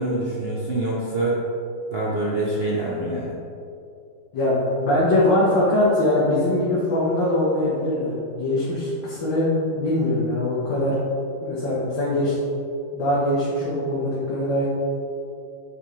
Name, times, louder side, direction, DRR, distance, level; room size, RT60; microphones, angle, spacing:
voice 1, 0.0-1.4 1.9-3.3, right 2 dB, 40° right, -5 dB, 1.0 m, -25 dB
voice 2, 4.3-11.0 11.4-12.4 12.9-14.7, left 1 dB, 70° left, -8 dB, 2.2 m, -22 dB
9.6 x 6.6 x 3.3 m, 2.6 s
omnidirectional pair, 2.1 m